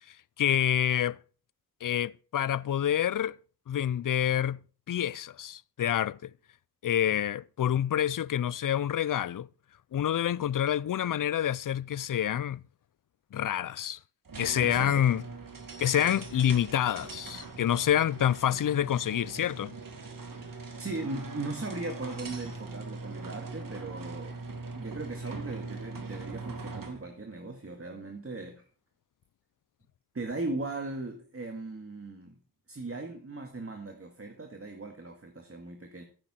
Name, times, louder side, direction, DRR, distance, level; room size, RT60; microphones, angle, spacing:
voice 1, 0.1-1.2 1.8-3.4 3.7-6.3 6.8-9.5 9.9-12.6 13.3-14.0 14.4-15.2 15.8-19.7, left 10 dB, 55° left, 0.5 m, -27 dB
sound 1, 14.3-27.1, right 3 dB, 55° right, 2.2 m, -41 dB
voice 2, 14.6-15.0 20.8-24.4 24.7-28.7 30.1-32.4 32.7-36.0, right 2 dB, 35° right, 2.0 m, -38 dB
15.0 x 8.9 x 4.3 m
wide cardioid pair, 85°, 39 cm